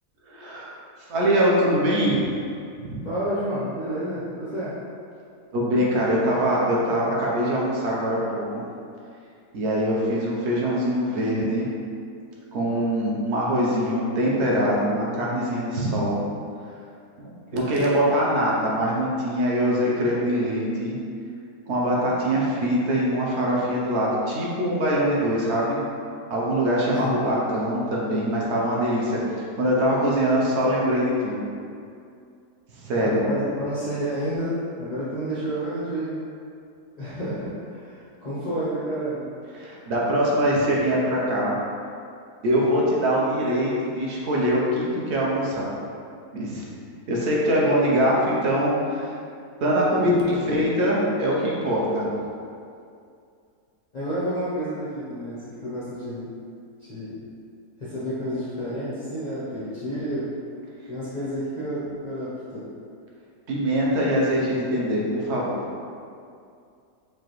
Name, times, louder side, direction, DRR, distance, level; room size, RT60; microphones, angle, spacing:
voice 1, 0.3-0.7 1.1-2.2 2.8-3.0 5.5-8.6 9.5-11.7 12.5-16.2 17.2-21.0 21.7-25.8 26.3-29.2 29.6-31.4 32.8-33.2 39.5-41.6 42.4-45.7 46.3-46.6 47.1-49.1 49.6-52.1 63.5-65.6, equal, 65° right, -4 dB, 0.7 m, -23 dB
voice 2, 3.0-4.8 17.5-18.0 26.9-27.2 32.9-36.2 36.9-39.2 50.0-50.5 53.9-56.3 56.8-57.2 57.8-60.3 60.9-62.7, equal, 75° left, -11 dB, 0.3 m, -30 dB
4.6 x 2.5 x 3.0 m, 2.4 s
omnidirectional pair, 1.8 m